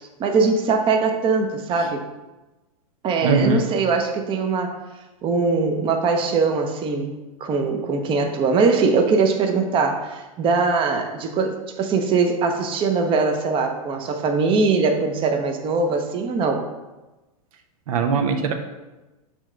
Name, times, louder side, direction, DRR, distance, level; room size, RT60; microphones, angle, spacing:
voice 1, 0.2-2.0 3.0-4.8 5.2-7.1 7.4-16.6, right 4 dB, 25° right, 4 dB, 0.8 m, -21 dB
voice 2, 3.2-3.6 17.9-18.5, right 4 dB, 65° right, 6 dB, 0.8 m, -21 dB
7.1 x 3.2 x 5.0 m, 1.1 s
hypercardioid pair, 115°, 19 cm